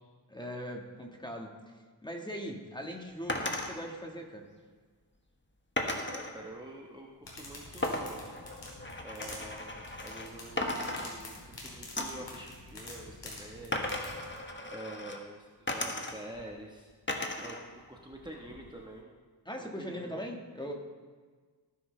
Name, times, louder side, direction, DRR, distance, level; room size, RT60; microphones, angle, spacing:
voice 1, 0.3-1.6 2.0-4.5 19.4-20.7, equal, 10° left, 1 dB, 1.6 m, -40 dB
sound 1, 3.3-3.7 5.8-6.3 7.8-10.3 10.6-11.5 12.0-12.3 13.7-15.2 15.7-16.4 17.1-17.6 18.0-18.8, left 1 dB, 25° left, 1.5 m, -36 dB
voice 2, 6.1-8.2 9.0-13.9 14.7-16.9 17.4-19.1 19.6-20.3, right 1 dB, 10° right, -1 dB, 1.3 m, -47 dB
sound 2, 7.2-14.4, left 2 dB, 80° left, 3.6 m, -47 dB
18.0 x 10.5 x 3.3 m, 1.5 s
wide cardioid pair, 65°, 43 cm